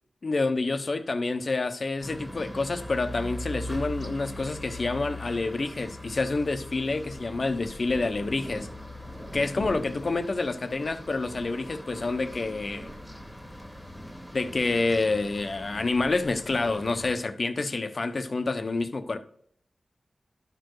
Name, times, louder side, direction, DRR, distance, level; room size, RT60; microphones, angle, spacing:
voice 1, 0.2-8.7 9.3-12.9 14.3-19.2, left 3 dB, 50° left, 0.8 m, -28 dB
sound 1, 2.0-17.1, left 1 dB, ahead, 1.4 m, -40 dB
12.5 x 4.6 x 4.7 m
wide cardioid pair, 100°, 0 cm